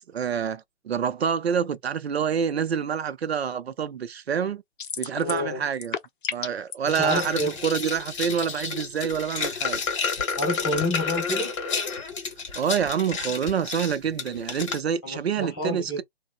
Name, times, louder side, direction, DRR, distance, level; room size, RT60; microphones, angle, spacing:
voice 1, 0.1-4.6 5.0-6.0 6.3-9.8 12.6-16.0, right 7 dB, 75° right, 0.5 m, -27 dB
sound 1, 4.8-5.5 5.7-6.8, left 7 dB, 55° left, 0.5 m, -32 dB
voice 2, 5.2-5.6 7.0-7.6 10.4-11.5 15.0-16.0, left 1 dB, ahead, 0.4 m, -29 dB
sound 2, 6.9-14.8, left 5 dB, 30° left, 0.9 m, -30 dB
2.8 x 2.0 x 2.4 m
figure-of-eight pair, 145°, 32 cm